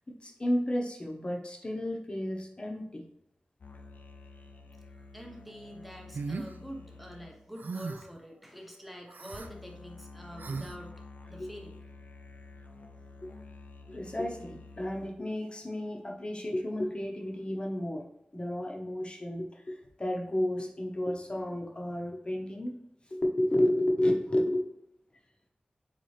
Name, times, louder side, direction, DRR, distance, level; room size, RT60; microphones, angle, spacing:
voice 1, 0.0-3.0 11.4-11.5 13.2-13.3 13.9-18.0 18.3-22.8 23.1-24.7, left 1 dB, 35° left, 0 dB, 0.9 m, -32 dB
sound 1, 3.6-8.6 9.4-15.4, left 3 dB, 70° left, 0.5 m, -50 dB
voice 2, 5.1-11.8, equal, 5° right, 1 dB, 0.9 m, -46 dB
sound 2, 6.1-6.5 7.6-8.1 9.1-9.5 10.4-10.8, right 4 dB, 80° right, 0.3 m, -37 dB
4.1 x 3.8 x 3.2 m, 0.76 s
wide cardioid pair, 75°, 3 cm